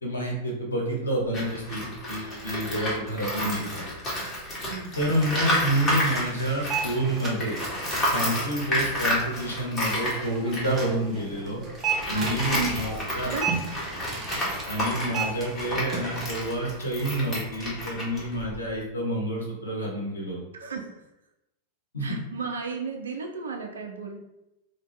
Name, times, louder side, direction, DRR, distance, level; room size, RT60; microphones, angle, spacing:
voice 1, 0.0-3.6 5.0-7.6 8.1-11.6 12.1-13.3 14.7-20.4 21.9-22.2, right 1 dB, 75° left, -1 dB, 0.7 m, -28 dB
Tools, 1.2-7.1 7.4-18.8, left 1 dB, 20° left, 1.0 m, -31 dB
voice 2, 3.3-3.7 4.6-5.0 12.1-13.4 20.5-20.9 22.0-24.2, right 5 dB, 70° right, 3 dB, 0.4 m, -34 dB
sound 1, 5.0-16.3, right 4 dB, 20° right, 0.6 m, -35 dB
2.5 x 2.2 x 3.2 m, 0.91 s
figure-of-eight pair, 90°, 0 cm